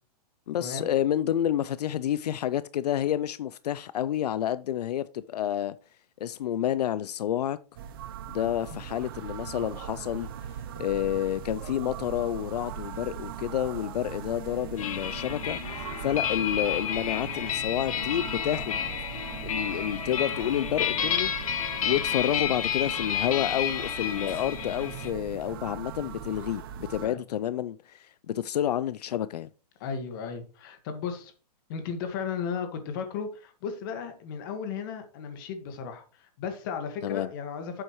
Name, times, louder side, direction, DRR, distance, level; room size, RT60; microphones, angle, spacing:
voice 1, 0.5-5.7 6.2-7.6 8.3-10.3 10.8-18.8 19.4-21.3 21.8-29.5 37.0-37.3, left 11 dB, 80° left, 0.5 m, -29 dB
sound 1, 7.8-27.1, right 10 dB, 35° right, 0.6 m, -40 dB
sound 2, 14.8-25.1, left 9 dB, 60° left, 1.5 m, -31 dB
voice 2, 29.8-31.3 31.7-37.8, left 6 dB, 35° left, 1.7 m, -35 dB
9.9 x 7.9 x 3.1 m
hypercardioid pair, 170°, 20 cm